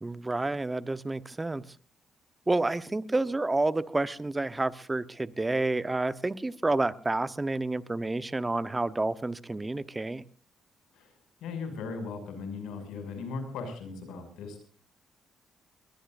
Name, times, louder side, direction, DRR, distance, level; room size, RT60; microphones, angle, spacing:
voice 1, 0.0-1.7 2.5-10.2, right 2 dB, 15° right, 1.0 m, -29 dB
voice 2, 11.4-14.6, left 4 dB, 85° left, 6.7 m, -38 dB
22.0 x 20.5 x 2.6 m
cardioid pair, 90°, 0 cm